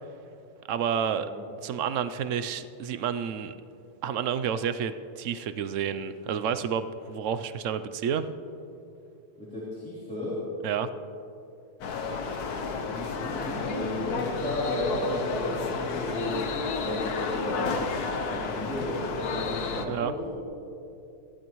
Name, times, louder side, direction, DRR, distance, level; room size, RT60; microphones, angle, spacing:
voice 1, 0.7-1.3 1.6-3.5 4.0-8.3 10.6-10.9 19.7-20.1, right 8 dB, 65° right, 11 dB, 0.9 m, -30 dB
voice 2, 9.4-10.4 12.3-17.7 18.3-20.3, left 1 dB, 5° left, -10 dB, 3.4 m, -33 dB
sound 1, 11.8-19.9, left 4 dB, 75° left, 1.5 m, -31 dB
22.5 x 15.5 x 3.1 m, 2.7 s
omnidirectional pair, 1.7 m